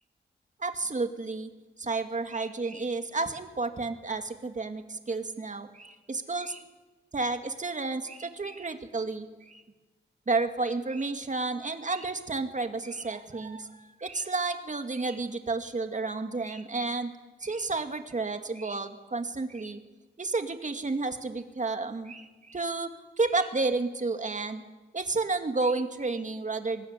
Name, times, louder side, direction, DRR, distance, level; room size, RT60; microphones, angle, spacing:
voice 1, 0.6-1.5 1.8-6.6 7.1-9.6 10.3-17.1 17.4-19.8 20.2-22.9 23.2-24.6 24.9-26.9, right 3 dB, 40° right, 7 dB, 2.3 m, -31 dB
24.0 x 20.5 x 9.8 m, 1.2 s
wide cardioid pair, 110°, 19 cm